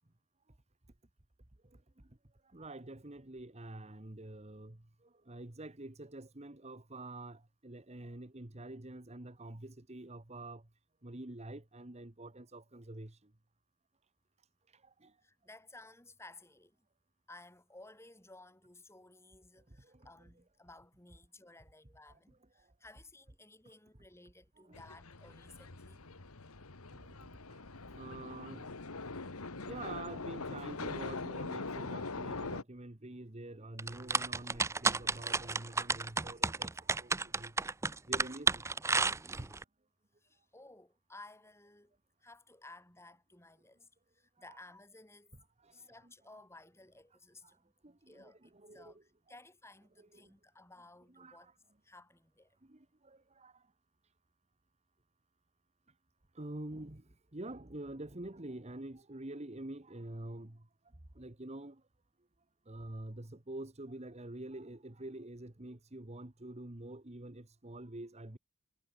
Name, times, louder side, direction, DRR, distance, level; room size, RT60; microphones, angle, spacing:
voice 1, 1.6-2.1 2.4-10.7 11.0-13.3 14.7-15.2 19.7-20.1 22.1-22.2 22.6-22.7 24.6-24.8 26.9-28.7 29.5-37.7 38.1-38.6 39.3-39.5 44.5-44.6 45.6-46.1 47.4-49.0 50.1-50.3 51.1-51.5 52.6-53.7 56.3-60.7 61.1-61.8 62.7-68.4, right 2 dB, 30° right, 1.4 m, -47 dB
voice 2, 15.2-16.9 17.3-26.0 40.2-43.9 44.1-45.4 45.7-47.7 48.1-51.6 51.8-52.6, left 2 dB, 10° left, 5.2 m, -57 dB
sound 1, 24.7-32.6, left 3 dB, 80° left, 1.7 m, -42 dB
sound 2, 33.8-39.6, right 4 dB, 15° right, 0.5 m, -31 dB
head